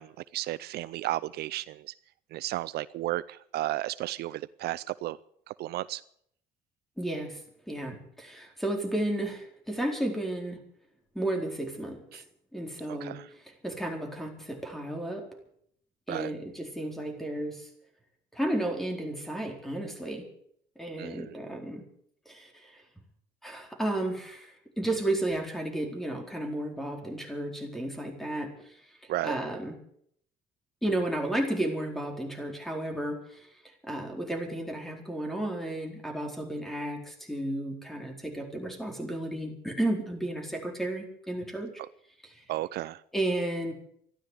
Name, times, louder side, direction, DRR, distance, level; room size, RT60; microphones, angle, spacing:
voice 1, 0.0-1.9 2.3-5.2 5.5-6.0 12.1-12.2 12.9-13.3 16.1-16.3 21.0-21.3 29.1-29.4 42.5-43.0, right 15 dB, 70° right, 17 dB, 0.5 m, -33 dB
voice 2, 7.0-7.4 7.7-10.6 11.1-12.2 12.5-13.2 13.4-15.3 16.1-17.7 18.3-20.2 20.8-21.8 22.3-22.8 23.4-28.8 29.2-29.8 30.8-33.5 33.8-41.7 42.2-42.4 43.1-43.7, right 1 dB, ahead, 3 dB, 4.3 m, -33 dB
14.5 x 12.0 x 8.2 m, 0.67 s
cardioid pair, 110°, 17 cm